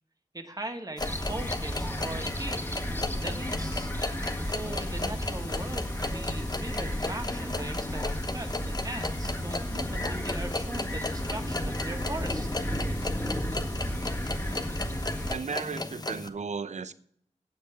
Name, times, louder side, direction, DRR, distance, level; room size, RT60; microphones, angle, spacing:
voice 1, 0.3-2.7 3.1-3.9 4.4-12.5, right 2 dB, 30° right, 1.9 m, -40 dB
sound 1, 1.0-16.3, left 2 dB, 30° left, 1.0 m, -36 dB
sound 2, 1.0-15.3, equal, 15° left, 2.3 m, -33 dB
voice 2, 15.3-16.9, right 5 dB, 65° right, 0.7 m, -35 dB
8.6 x 7.5 x 8.5 m
wide cardioid pair, 70°, 13 cm